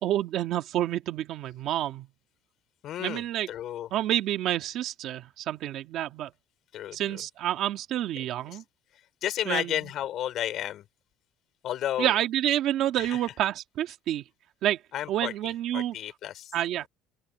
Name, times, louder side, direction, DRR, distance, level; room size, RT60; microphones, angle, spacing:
voice 1, 0.0-2.1 3.0-3.5 3.9-6.3 6.9-8.6 9.5-9.9 12.0-14.2 14.6-14.8 15.1-16.0 16.5-16.9, right 12 dB, 50° right, 2.3 m, -28 dB
voice 2, 2.8-3.9 6.7-7.0 9.2-10.8 11.6-12.1 13.0-13.1 14.9-15.3 15.7-16.5, left 12 dB, 45° left, 4.2 m, -32 dB
open air
cardioid pair, 165°, 0 cm